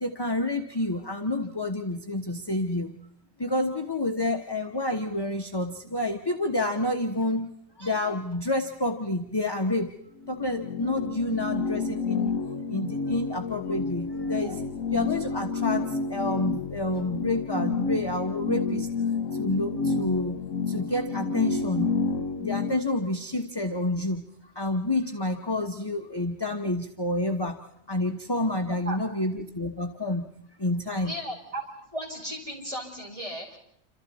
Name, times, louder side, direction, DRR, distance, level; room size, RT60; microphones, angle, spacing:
voice 1, 0.0-3.0 3.4-7.5 7.8-9.9 10.3-12.4 12.7-14.6 14.9-18.9 19.3-20.4 20.7-22.0 22.4-24.3 24.5-27.6 27.9-30.3 30.6-31.1, left 1 dB, 20° left, 4 dB, 1.1 m, -29 dB
sound 1, 10.2-22.7, left 4 dB, 80° left, 1.4 m, -29 dB
voice 2, 31.0-31.6 31.9-33.6, right 1 dB, 25° right, -1 dB, 5.9 m, -35 dB
28.5 x 26.5 x 4.2 m, 0.73 s
omnidirectional pair, 1.3 m